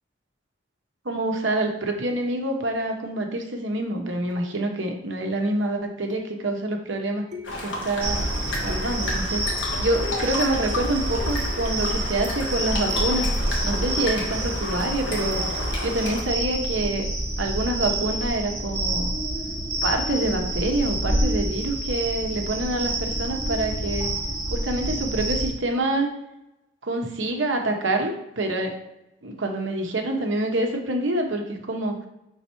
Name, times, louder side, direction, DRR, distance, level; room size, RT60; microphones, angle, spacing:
voice 1, 1.0-7.2 7.6-8.3 8.6-9.4 9.8-13.3 13.6-15.4 15.8-17.1 17.4-19.2 19.8-24.1 24.5-26.1 26.8-28.8 29.2-32.0, right 1 dB, 90° right, 3 dB, 1.1 m, -26 dB
sound 1, 4.3-4.8 6.1-6.5 7.3-7.9 8.7-9.2 10.0-10.5 11.2-12.8 13.9-14.3 15.7-16.0, left 5 dB, 40° right, 1.1 m, -42 dB
sound 2, 7.4-16.2, left 1 dB, 85° left, 1.5 m, -32 dB
sound 3, 8.0-25.5, right 1 dB, 55° right, 1.5 m, -28 dB
5.6 x 4.0 x 4.5 m, 0.88 s
head